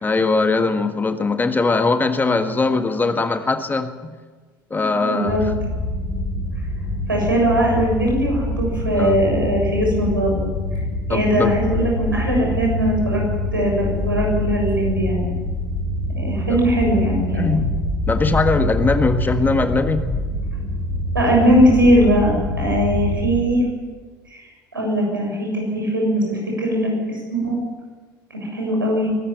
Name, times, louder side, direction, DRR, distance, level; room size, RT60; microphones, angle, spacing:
voice 1, 0.0-4.2 4.7-5.4 8.9-9.2 11.1-11.6 16.5-16.6 17.4-17.7 18.1-20.2, left 3 dB, 15° left, 9 dB, 1.5 m, -20 dB
voice 2, 4.7-5.5 7.1-10.4 10.7-10.8 11.1-13.2 13.5-15.3 16.2-17.5 21.1-23.6 24.3-24.4 24.7-27.6 28.3-29.1, equal, 85° right, -1 dB, 7.1 m, -20 dB
sound 1, 5.3-23.4, left 1 dB, 40° left, 6.0 m, -25 dB
22.0 x 13.0 x 8.9 m, 1.4 s
figure-of-eight pair, 70°, 11 cm